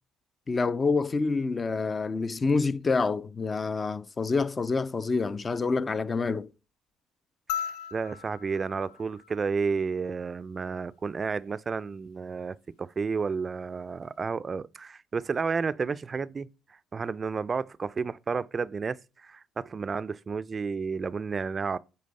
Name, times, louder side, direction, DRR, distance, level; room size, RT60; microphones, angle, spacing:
voice 1, 0.5-6.5, left 4 dB, 30° left, 0.4 m, -27 dB
sound 1, 7.5-10.1 11.7-11.8, left 9 dB, 85° left, 0.4 m, -38 dB
voice 2, 7.5-16.5 16.9-21.8, right 5 dB, 35° right, 0.4 m, -31 dB
8.6 x 3.9 x 5.3 m
cardioid pair, 90°, 0 cm